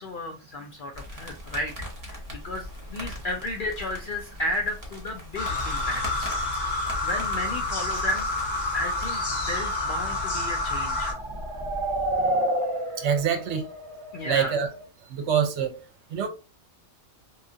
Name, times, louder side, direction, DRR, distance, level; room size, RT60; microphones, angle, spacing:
voice 1, 0.0-6.3 6.7-8.3 8.7-11.2 12.9-13.1 14.1-14.6, left 1 dB, 70° left, 0.5 m, -33 dB
sound 1, 0.9-9.5, equal, 20° right, 0.7 m, -40 dB
sound 2, 5.4-11.1, left 2 dB, 40° left, 0.8 m, -28 dB
sound 3, 9.0-14.8, right 1 dB, 45° right, 0.4 m, -31 dB
voice 2, 13.0-13.7 14.2-14.7 15.1-15.8 16.1-16.3, right 8 dB, 65° right, 0.8 m, -25 dB
2.9 x 2.3 x 2.6 m
omnidirectional pair, 1.4 m